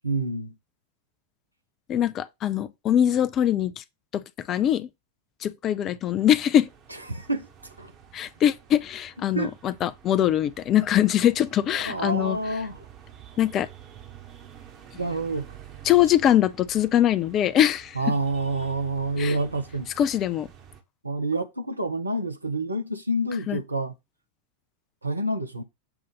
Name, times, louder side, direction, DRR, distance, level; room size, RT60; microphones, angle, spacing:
voice 1, 0.0-0.5 6.9-7.5 7.8-7.9 9.3-9.5 11.7-12.8 15.0-15.6 17.9-19.9 21.0-23.9 25.0-25.6, right 2 dB, 85° right, 0.8 m, -28 dB
voice 2, 1.9-3.8 4.1-4.9 5.4-6.7 8.1-12.4 13.4-13.7 15.9-18.0 19.2-19.4 20.0-20.5 23.5-23.6, left 11 dB, 30° left, 0.4 m, -22 dB
sound 1, 6.1-20.8, right 9 dB, 35° right, 1.1 m, -49 dB
6.9 x 2.5 x 5.5 m
figure-of-eight pair, 90°, 0 cm